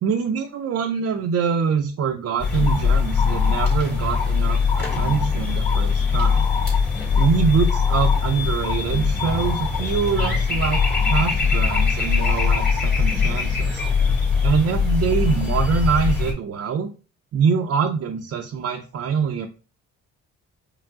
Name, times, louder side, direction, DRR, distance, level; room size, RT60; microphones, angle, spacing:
voice 1, 0.0-6.5 7.2-13.8 14.4-16.9 17.3-19.5, right 6 dB, 55° right, 2 dB, 0.5 m, -24 dB
sound 1, 2.4-16.3, left 5 dB, 35° left, 2.1 m, -21 dB
4.6 x 2.1 x 3.6 m, 0.33 s
cardioid pair, 90°, 30 cm